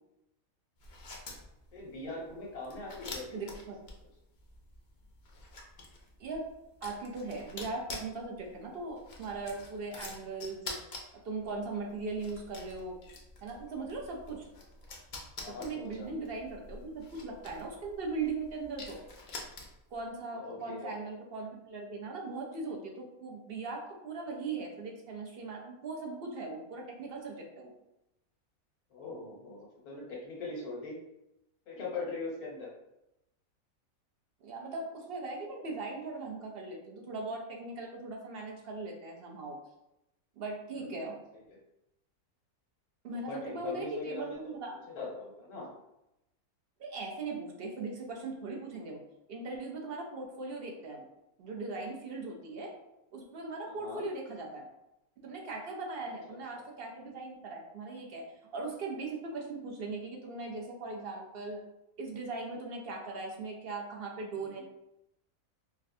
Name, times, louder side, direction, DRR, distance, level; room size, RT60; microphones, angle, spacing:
sound 1, 0.8-20.0, left 3 dB, 60° left, 0.4 m, -48 dB
voice 1, 1.7-3.6 15.4-16.1 20.3-21.1 28.9-31.0 31.7-32.7 40.7-41.0 41.5-41.6 43.3-44.5 44.9-45.7 53.7-54.0 56.5-56.6 64.3-64.6, left 3 dB, 85° left, -3 dB, 1.5 m, -41 dB
voice 2, 3.3-3.8 6.2-6.4 6.8-10.7 11.2-13.0 13.4-14.5 15.5-19.0 19.9-27.7 34.4-39.6 40.4-41.2 43.0-44.8 46.8-49.0 49.3-51.1 51.4-52.7 53.1-54.7 55.2-58.2 58.5-61.6 62.0-64.6, right 3 dB, 55° right, 0 dB, 0.7 m, -39 dB
4.9 x 2.2 x 2.6 m, 0.88 s
omnidirectional pair, 1.5 m